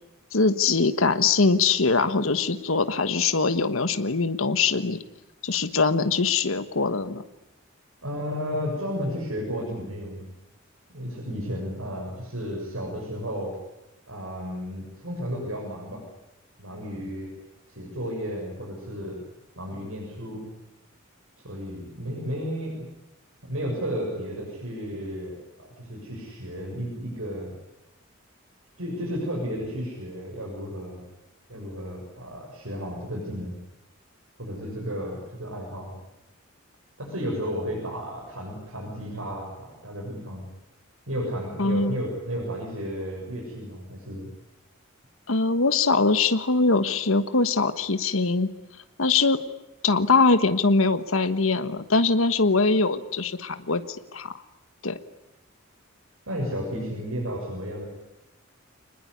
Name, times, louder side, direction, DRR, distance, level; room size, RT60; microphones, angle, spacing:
voice 1, 0.3-5.0 5.4-7.2 41.6-42.0 45.3-48.5 49.0-49.4 49.8-53.8 54.1-54.3 54.8-55.0, left 4 dB, 80° left, 11 dB, 1.4 m, -22 dB
voice 2, 8.0-10.3 10.9-13.6 14.1-16.0 16.6-17.3 17.7-19.2 19.6-20.5 21.4-22.8 23.5-27.5 28.8-31.0 31.5-33.6 34.4-36.0 37.0-40.5 41.1-44.3 56.3-57.9, equal, 85° right, -2 dB, 7.1 m, -33 dB
25.5 x 20.5 x 9.8 m, 0.94 s
head